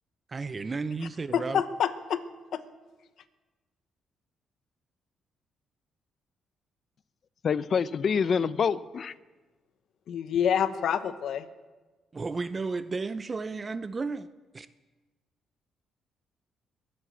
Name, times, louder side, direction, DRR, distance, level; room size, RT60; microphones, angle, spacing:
voice 1, 0.3-1.6 12.1-14.3 14.5-14.7, right 4 dB, 30° right, 0.6 m, -33 dB
voice 2, 1.3-2.2 2.5-2.6 10.1-11.5, left 8 dB, 70° left, 1.0 m, -27 dB
voice 3, 7.4-9.1, left 6 dB, 50° left, 0.6 m, -26 dB
22.0 x 7.8 x 7.7 m
cardioid pair, 90°, 0 cm